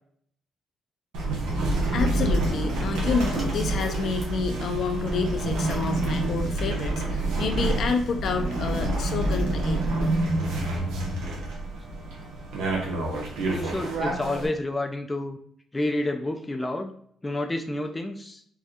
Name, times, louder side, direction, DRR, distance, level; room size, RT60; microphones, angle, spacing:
sound 1, 1.1-14.5, right 2 dB, 90° right, 0.9 m, -27 dB
voice 1, 1.9-9.8, left 5 dB, 65° left, 5 dB, 0.6 m, -29 dB
sound 2, 2.7-6.2 7.3-7.6, right 1 dB, 35° right, 1.5 m, -47 dB
voice 2, 13.5-15.4 15.7-17.0 17.2-18.4, left 1 dB, 15° left, 4 dB, 0.4 m, -29 dB
4.7 x 2.3 x 2.7 m, 0.65 s
cardioid pair, 90°, 0 cm